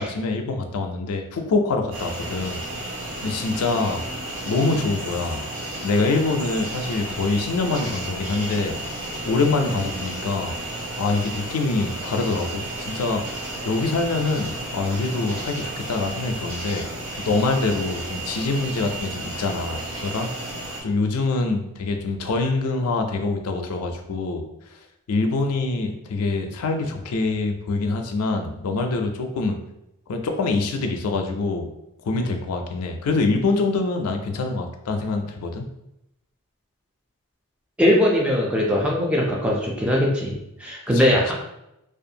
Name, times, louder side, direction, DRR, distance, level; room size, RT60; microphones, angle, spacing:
voice 1, 0.0-2.6 3.2-4.0 4.5-5.5 5.8-8.8 9.2-10.5 11.0-13.2 13.7-16.8 17.2-20.3 20.8-24.4 25.1-29.6 30.1-31.7 32.0-35.7 40.9-41.0, left 3 dB, 85° left, 4 dB, 0.4 m, -25 dB
sound 1, 1.9-20.8, right 1 dB, 60° right, 0.7 m, -33 dB
voice 2, 37.8-41.3, left 1 dB, 5° right, -3 dB, 0.4 m, -20 dB
2.5 x 2.3 x 2.7 m, 0.85 s
head